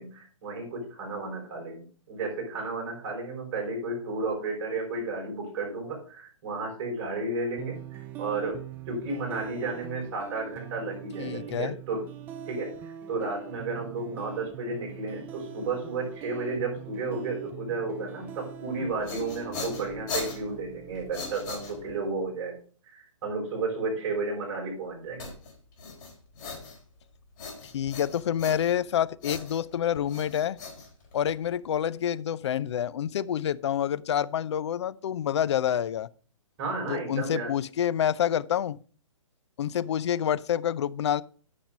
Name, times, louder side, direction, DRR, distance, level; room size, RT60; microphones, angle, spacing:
voice 1, 0.0-12.0 12.5-12.7 13.1-22.6 22.9-25.3 36.6-37.5, right 3 dB, 35° right, 5.2 m, -33 dB
sound 1, 7.6-22.6, right 10 dB, 10° right, 0.3 m, -43 dB
voice 2, 11.2-11.8 27.6-30.6 31.1-36.1 36.9-38.8 39.6-41.2, left 9 dB, 60° left, 0.5 m, -28 dB
sound 2, 18.7-22.1 25.2-27.0 27.4-28.9 29.2-31.5, left 4 dB, 35° left, 4.1 m, -39 dB
9.5 x 5.9 x 5.1 m
hypercardioid pair, 145°, 17 cm